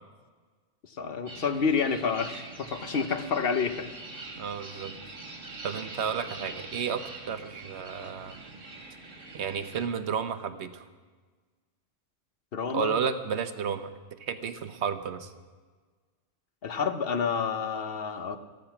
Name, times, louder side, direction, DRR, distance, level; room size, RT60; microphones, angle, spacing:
voice 1, 1.0-3.9 12.5-13.0 16.6-18.4, left 5 dB, 55° left, 9 dB, 1.0 m, -29 dB
sound 1, 1.3-9.9, right 3 dB, 85° right, 2.3 m, -44 dB
voice 2, 4.4-4.9 5.6-8.4 9.3-10.8 12.7-13.9 14.2-15.3, right 7 dB, 65° right, 10 dB, 1.1 m, -32 dB
14.0 x 14.0 x 5.9 m, 1.4 s
omnidirectional pair, 1.3 m